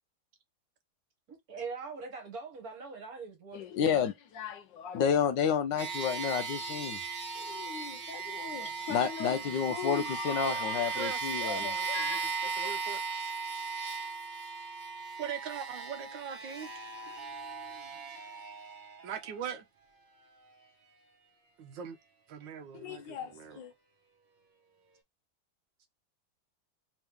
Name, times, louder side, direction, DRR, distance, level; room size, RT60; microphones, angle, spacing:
voice 1, 1.3-3.7, right 4 dB, 50° right, 1.5 m, -42 dB
voice 2, 3.5-7.0 7.4-12.8 22.7-23.7, left 7 dB, 75° left, 1.1 m, -32 dB
sound 1, 5.8-19.4, right 5 dB, 30° right, 0.9 m, -37 dB
voice 3, 10.9-13.0 15.2-16.9 19.0-19.6 21.6-22.0 22.3-23.6, right 7 dB, 75° right, 1.2 m, -42 dB
3.6 x 3.0 x 3.3 m
omnidirectional pair, 2.2 m